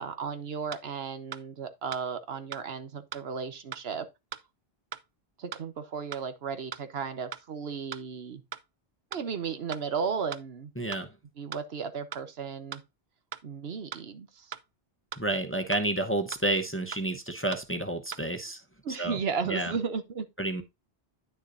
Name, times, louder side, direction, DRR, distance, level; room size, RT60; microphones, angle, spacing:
voice 1, 0.0-4.1 5.4-8.4 9.1-10.7 11.4-12.8 13.4-14.5 18.8-20.3, right 6 dB, 75° right, 1.2 m, -34 dB
sound 1, 0.7-0.8 1.3-1.4 1.9-2.0 2.5-2.6 3.1-3.2 3.7-3.8 4.3-4.4 4.9-5.0 5.5-5.6 6.1-6.2 6.7-6.8 7.3-7.4 7.9-8.0 8.5-8.6 9.1-9.2 9.7-9.8 10.3-10.4 10.9-11.0 11.5-11.6 12.1-12.2 12.7-12.8 13.3-13.4 13.9-14.0 14.5-14.6 15.1-15.2 15.7-15.8 16.3-16.4 16.9-17.0 17.5-17.6 18.1-18.2, right 8 dB, 50° right, 0.5 m, -38 dB
voice 2, 10.8-11.1 15.2-18.6 19.0-19.2 19.5-19.7 20.4-20.6, right 1 dB, 15° left, 0.8 m, -30 dB
9.7 x 6.6 x 2.5 m
omnidirectional pair, 1.0 m